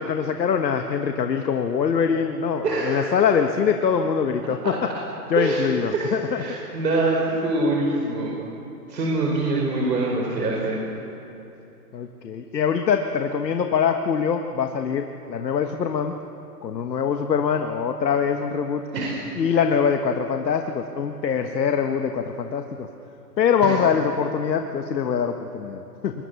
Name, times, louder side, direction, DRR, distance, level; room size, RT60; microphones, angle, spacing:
voice 1, 0.0-4.7 5.3-6.4 11.9-16.1 16.6-18.8 19.4-22.9 23.4-26.2, left 6 dB, 85° left, 5 dB, 1.4 m, -23 dB
voice 2, 2.6-3.3 4.4-4.7 5.4-5.7 5.9-8.3 8.9-10.8 18.9-19.2 23.6-23.8, right 2 dB, 75° right, -3 dB, 5.0 m, -25 dB
22.0 x 22.0 x 7.0 m, 2.9 s
hypercardioid pair, 180°, 49 cm